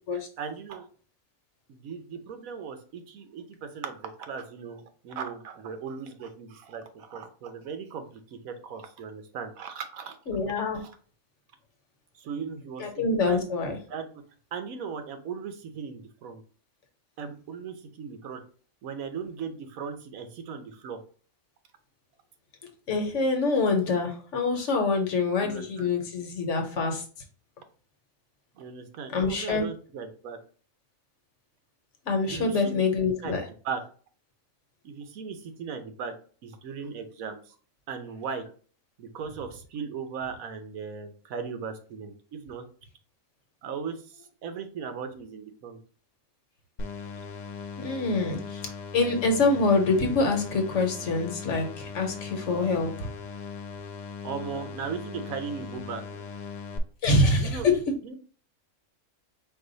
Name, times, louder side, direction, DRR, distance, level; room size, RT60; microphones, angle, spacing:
voice 1, 0.1-0.9 1.7-8.0 8.4-10.2 10.7-10.9 12.2-13.4 13.9-14.1 14.5-16.4 17.2-18.4 18.8-21.0 25.4-25.9 28.6-30.4 32.3-32.9 33.2-33.3 33.6-33.8 34.8-36.1 36.4-37.5 37.9-38.4 39.0-42.6 43.6-44.0 44.4-45.8 54.2-56.2 57.3-57.7 58.0-58.1, right 6 dB, 80° right, 7 dB, 1.2 m, -37 dB
voice 2, 10.3-10.8 12.8-13.8 22.9-27.0 29.1-29.6 32.1-33.4 47.8-53.1 57.0-57.8, left 3 dB, 65° left, 4 dB, 1.2 m, -25 dB
sound 1, 46.8-56.8, left 5 dB, 90° left, 0.4 m, -39 dB
4.7 x 2.4 x 3.9 m, 0.41 s
omnidirectional pair, 1.4 m